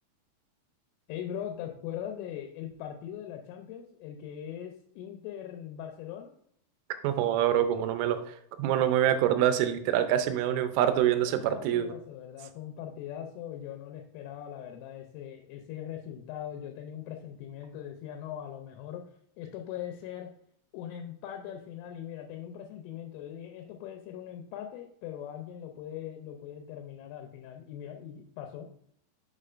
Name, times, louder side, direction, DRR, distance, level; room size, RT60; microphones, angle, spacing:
voice 1, 1.1-6.3 11.2-19.0 19.4-20.3 20.7-28.7, left 10 dB, 85° left, 4 dB, 3.1 m, -41 dB
voice 2, 7.0-11.9, right 11 dB, 85° right, 9 dB, 3.1 m, -26 dB
6.7 x 6.6 x 2.5 m, 0.66 s
omnidirectional pair, 5.6 m